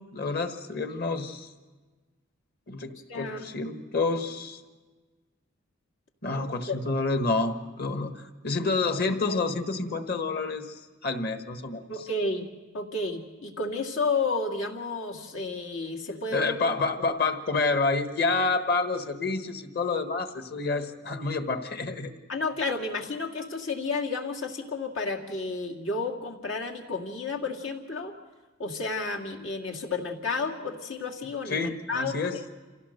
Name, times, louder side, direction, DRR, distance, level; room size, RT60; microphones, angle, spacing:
voice 1, 0.0-1.5 2.7-4.6 6.2-12.1 16.3-22.1 31.5-32.4, left 3 dB, 50° left, 7 dB, 1.4 m, -29 dB
voice 2, 3.1-3.7 6.3-6.8 11.9-12.5 12.7-16.6 22.3-28.1 28.6-32.2, left 3 dB, 85° left, 2 dB, 2.2 m, -31 dB
27.0 x 16.5 x 6.6 m, 1.3 s
head